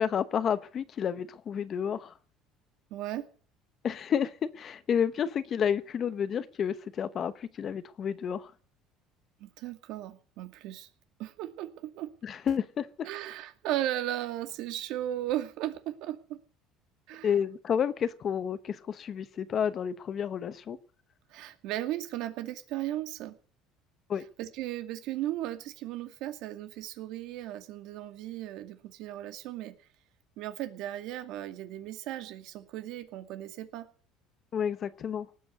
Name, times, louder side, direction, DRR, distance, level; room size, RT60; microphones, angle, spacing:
voice 1, 0.0-2.1 3.8-8.5 12.2-13.1 17.2-20.8 24.1-24.2 34.5-35.3, left 8 dB, 35° left, 0.9 m, -30 dB
voice 2, 2.9-3.3 9.4-10.9 11.2-12.1 13.0-16.4 17.1-17.3 21.3-23.4 24.4-29.7 30.4-33.9, right 13 dB, 65° right, 2.2 m, -36 dB
19.0 x 8.1 x 9.4 m
cardioid pair, 145°, 0 cm